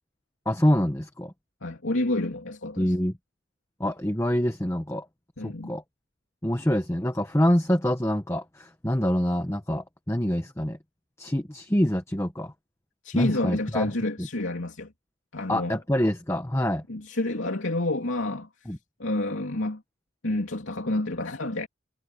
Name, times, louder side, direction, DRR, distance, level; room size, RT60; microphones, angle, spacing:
voice 1, 0.5-1.3 2.8-3.1 3.8-5.1 5.4-5.8 6.4-10.8 11.2-12.5 13.1-13.9 15.5-16.8 18.7-18.8, equal, 15° left, 1.1 m, -25 dB
voice 2, 1.6-2.9 5.4-5.7 13.0-14.9 15.3-15.8 16.9-18.5 19.0-19.8 20.2-21.7, left 2 dB, 90° left, 3.0 m, -29 dB
head